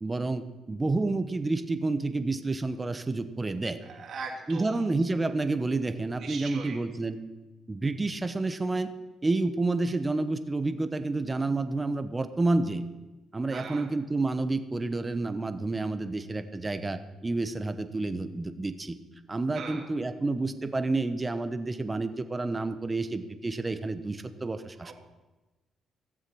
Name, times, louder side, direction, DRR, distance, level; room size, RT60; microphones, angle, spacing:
voice 1, 0.0-3.8 4.5-7.2 7.7-8.9 9.2-12.8 13.3-19.0 19.3-24.9, right 2 dB, 20° right, 10 dB, 1.0 m, -29 dB
voice 2, 3.8-4.8 6.2-6.8 13.5-13.9 19.5-19.9 24.8-24.9, right 5 dB, 60° right, 0 dB, 3.0 m, -40 dB
16.0 x 7.5 x 6.1 m, 1.1 s
cardioid pair, 90°, 0 cm